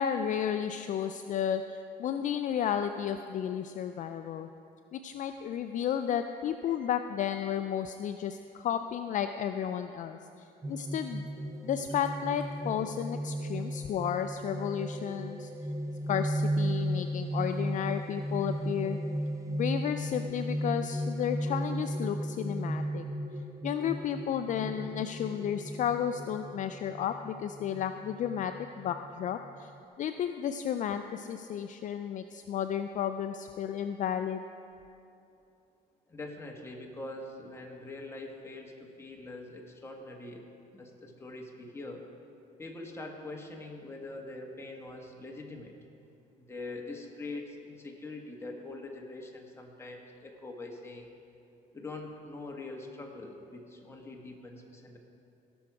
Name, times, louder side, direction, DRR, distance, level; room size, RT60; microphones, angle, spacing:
voice 1, 0.0-4.5 4.9-11.2 11.6-15.5 16.1-19.0 19.5-23.0 23.6-29.7 30.0-34.4, left 9 dB, 50° left, 8 dB, 0.4 m, -33 dB
sound 1, 10.6-29.8, right 1 dB, 20° right, 0.5 m, -35 dB
voice 2, 36.1-40.5 40.7-42.1 42.6-45.7 46.4-51.1 51.7-55.0, left 2 dB, 15° left, 0 dB, 1.5 m, -43 dB
17.0 x 6.2 x 4.8 m, 2.7 s
cardioid pair, 110°, 17 cm